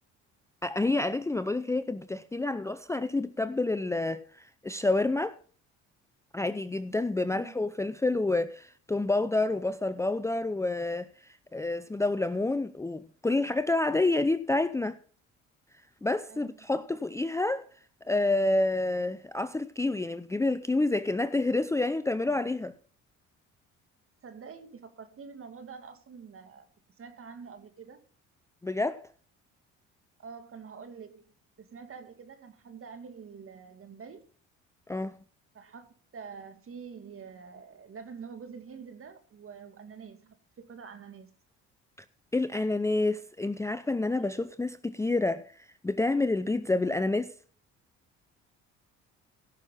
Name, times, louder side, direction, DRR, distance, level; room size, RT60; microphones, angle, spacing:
voice 1, 0.6-5.4 6.3-11.1 11.5-15.0 16.0-17.7 18.1-22.7 28.6-29.1 34.9-35.2 42.3-45.5 45.8-47.3, left 2 dB, 10° left, 0.5 m, -28 dB
voice 2, 7.2-7.6 16.3-16.7 22.3-22.4 24.2-26.7 27.0-28.0 30.2-31.2 31.6-34.2 35.5-35.9 36.1-41.3 44.2-44.5, right 6 dB, 45° right, 2.4 m, -46 dB
16.5 x 6.4 x 5.7 m
supercardioid pair, 80°, 31 cm